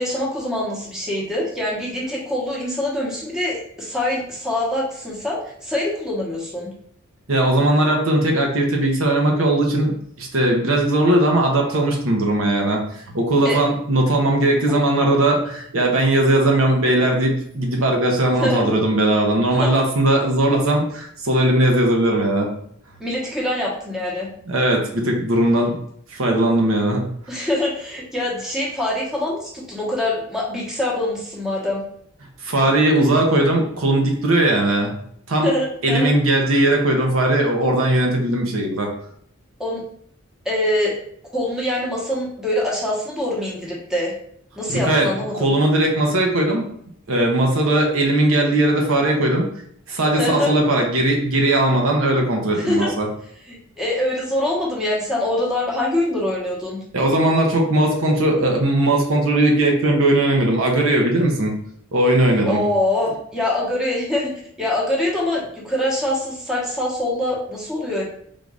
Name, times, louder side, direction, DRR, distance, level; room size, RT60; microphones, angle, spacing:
voice 1, 0.0-6.7 13.4-13.6 14.7-14.8 18.4-18.7 19.6-19.7 23.0-24.3 27.3-31.8 35.4-36.1 39.6-39.8 40.4-40.9 41.3-44.1 44.6-45.5 50.2-50.5 52.6-52.9 53.5-56.8 62.4-68.0, left 1 dB, ahead, -4 dB, 1.0 m, -24 dB
voice 2, 7.3-9.9 10.2-22.5 24.5-25.8 26.1-27.1 32.4-34.9 35.3-35.5 35.8-38.9 44.7-45.1 45.3-46.6 47.1-49.5 49.9-53.1 56.9-61.5 61.9-62.6, right 1 dB, 85° right, 1 dB, 0.9 m, -18 dB
3.8 x 2.6 x 4.7 m, 0.66 s
head